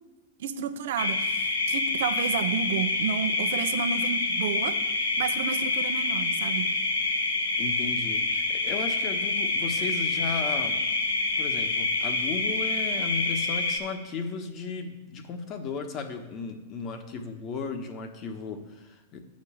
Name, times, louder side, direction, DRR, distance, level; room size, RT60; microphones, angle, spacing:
voice 1, 0.4-4.8 5.2-6.7, right 7 dB, 65° right, 10 dB, 0.8 m, -31 dB
sound 1, 1.0-13.8, left 3 dB, 80° left, 1.4 m, -27 dB
voice 2, 7.6-10.8 11.4-19.3, left 5 dB, 40° left, 6 dB, 1.2 m, -35 dB
7.5 x 5.3 x 7.1 m, 1.2 s
hypercardioid pair, 105°, 0 cm